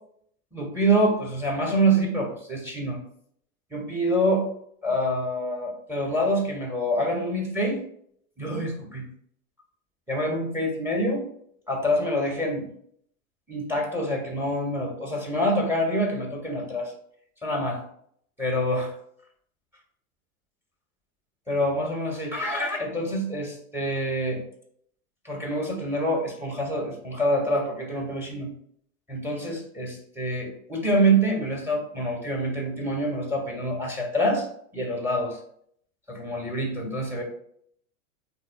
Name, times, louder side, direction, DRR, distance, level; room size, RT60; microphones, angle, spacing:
voice 1, 0.5-3.0 3.7-4.5 4.8-7.8 8.4-9.0 10.1-11.2 11.7-12.6 13.5-16.9 17.4-17.8 18.4-18.9 21.5-24.4 25.2-28.5 29.1-34.5 34.7-35.4 36.1-37.2, right 1 dB, 5° right, 1 dB, 1.5 m, -26 dB
8.3 x 2.8 x 2.3 m, 0.65 s
hypercardioid pair, 90°, 43 cm